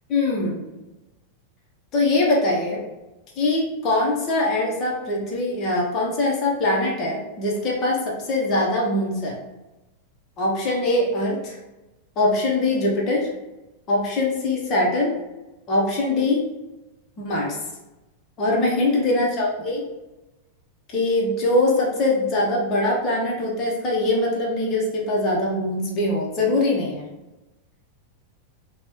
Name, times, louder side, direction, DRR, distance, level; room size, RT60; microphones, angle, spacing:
voice 1, 0.1-0.6 1.9-2.8 3.4-9.4 10.4-11.6 12.2-13.3 13.9-15.1 15.7-16.5 17.2-17.6 18.4-19.9 20.9-27.1, left 2 dB, 35° left, -3 dB, 0.9 m, -22 dB
3.0 x 2.3 x 3.1 m, 1.0 s
figure-of-eight pair, 90°, 0 cm